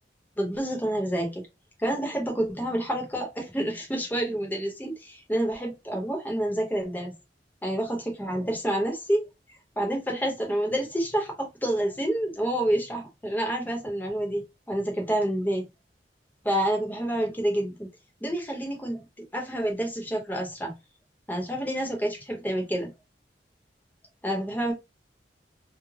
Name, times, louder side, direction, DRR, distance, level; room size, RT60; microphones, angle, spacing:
voice 1, 0.4-1.4 1.8-7.1 7.6-9.2 9.8-14.4 14.7-15.6 16.4-17.9 18.2-19.1 19.3-20.7 21.3-22.9 24.2-24.7, right 1 dB, 10° left, 0.8 m, -28 dB
3.2 x 2.0 x 2.2 m
head